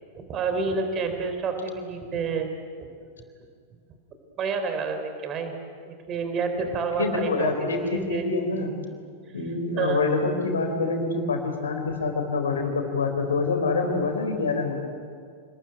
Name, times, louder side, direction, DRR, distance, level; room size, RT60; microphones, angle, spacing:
voice 1, 0.1-2.5 4.4-5.6 5.8-8.2 9.8-10.0, right 4 dB, 30° right, 6 dB, 3.9 m, -29 dB
voice 2, 7.0-8.7 9.3-14.7, left 3 dB, 70° left, 4 dB, 4.3 m, -26 dB
27.5 x 21.0 x 9.2 m, 2.1 s
figure-of-eight pair, 90°, 0 cm